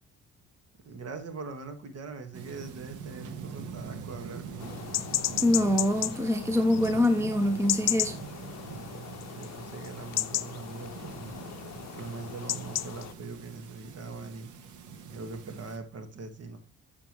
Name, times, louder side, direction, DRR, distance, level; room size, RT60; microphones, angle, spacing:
voice 1, 0.8-4.8 8.7-11.4 11.9-14.5 15.1-16.6, right 4 dB, 55° right, 1.7 m, -42 dB
sound 1, 2.3-15.8, right 5 dB, 90° right, 1.1 m, -43 dB
sound 2, 4.6-13.1, left 13 dB, 60° left, 0.6 m, -34 dB
voice 2, 5.4-8.2, left 1 dB, 10° right, 0.7 m, -25 dB
7.0 x 6.8 x 3.1 m
cardioid pair, 90°, 30 cm